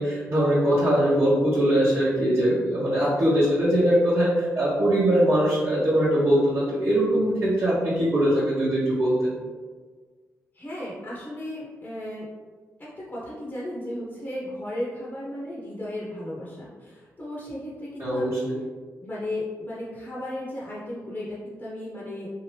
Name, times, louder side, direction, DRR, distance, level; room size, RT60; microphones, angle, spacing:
voice 1, 0.0-9.3 18.0-18.6, right 1 dB, 45° right, -9 dB, 1.0 m, -22 dB
voice 2, 10.5-12.3 12.8-18.5 19.0-22.3, left 1 dB, 30° left, -7 dB, 0.9 m, -35 dB
2.8 x 2.5 x 3.3 m, 1.5 s
cardioid pair, 60°, 6 cm